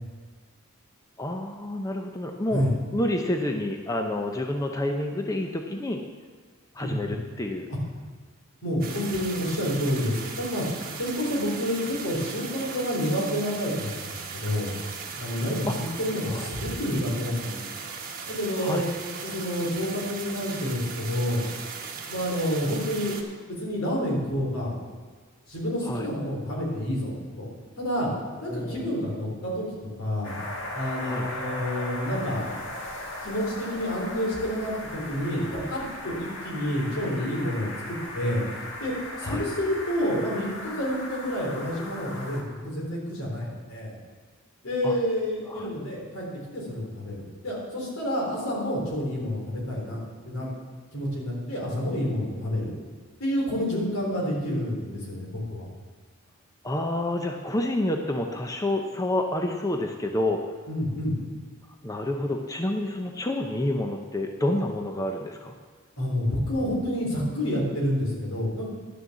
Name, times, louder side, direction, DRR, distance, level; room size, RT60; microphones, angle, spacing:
voice 1, 1.2-6.0 6.7-7.7 15.6-15.8 16.3-16.5 18.6-18.8 25.8-26.1 28.4-28.8 31.0-31.3 39.2-39.4 44.8-45.0 45.5-45.7 56.6-60.4 61.8-65.5, left 1 dB, 15° left, 3 dB, 0.6 m, -29 dB
voice 2, 8.6-14.7 15.2-17.6 18.3-18.8 19.2-21.4 22.1-23.2 23.6-24.7 25.5-27.5 27.8-28.1 28.4-29.6 30.0-30.3 30.7-32.6 33.2-37.7 38.1-38.4 38.8-38.9 39.2-44.0 44.6-46.3 46.5-50.0 50.3-50.5 50.9-52.7 53.2-55.7 60.7-61.1 66.0-68.8, equal, 80° left, -3 dB, 3.7 m, -29 dB
sound 1, 8.8-23.2, right 5 dB, 40° right, 1.3 m, -38 dB
sound 2, 30.2-42.4, left 1 dB, 60° left, 1.7 m, -37 dB
11.0 x 6.5 x 7.2 m, 1.5 s
head